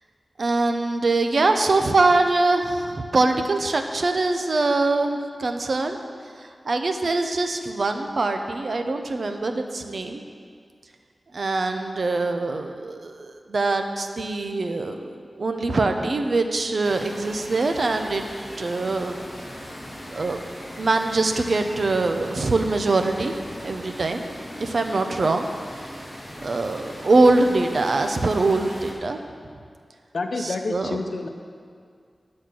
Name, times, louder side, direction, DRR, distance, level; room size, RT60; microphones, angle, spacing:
voice 1, 0.4-6.0 6.4-10.2 11.3-18.3 18.6-19.2 20.1-20.4 20.8-23.3 23.6-24.2 24.6-25.8 26.4-29.2 30.4-31.0, right 3 dB, 60° right, 6 dB, 0.7 m, -23 dB
sound 1, 16.8-28.9, equal, 10° left, 1.7 m, -39 dB
voice 2, 30.1-31.3, left 3 dB, 75° left, 5 dB, 0.7 m, -28 dB
10.0 x 4.3 x 7.5 m, 2.1 s
wide cardioid pair, 85°, 0 cm